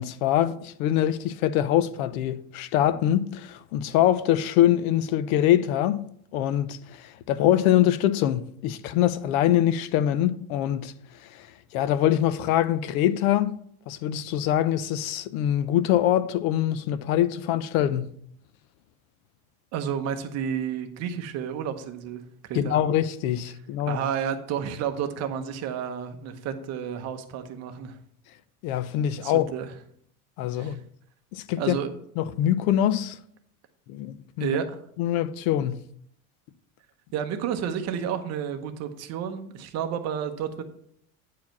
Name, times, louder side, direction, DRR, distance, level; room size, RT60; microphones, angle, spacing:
voice 1, 0.0-6.0 6.3-10.9 11.2-11.5 11.7-13.6 13.9-18.2 22.5-24.0 28.6-29.5 30.4-30.8 31.3-31.8 32.2-33.2 33.9-34.5 35.0-35.9, left 11 dB, 75° left, 0.7 m, -24 dB
voice 2, 19.7-22.8 23.9-28.0 29.2-29.7 30.6-30.8 31.6-32.0 34.4-34.8 37.1-40.6, right 8 dB, 40° right, 0.9 m, -31 dB
9.2 x 4.8 x 5.9 m
cardioid pair, 170°, 42 cm